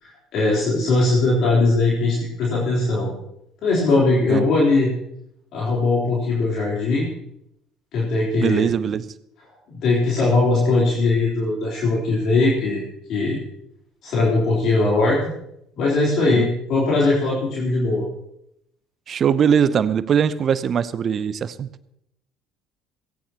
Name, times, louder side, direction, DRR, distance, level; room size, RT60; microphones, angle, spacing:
voice 1, 0.0-3.1 3.6-4.9 5.5-7.1 7.9-8.7 9.7-12.8 13.1-13.4 14.0-15.3 15.7-18.0, left 3 dB, 55° left, -5 dB, 3.8 m, -20 dB
voice 2, 8.4-9.1 16.3-16.5 19.1-21.7, right 7 dB, 45° right, 16 dB, 0.8 m, -21 dB
17.0 x 17.0 x 3.0 m, 0.80 s
figure-of-eight pair, 55°, 0 cm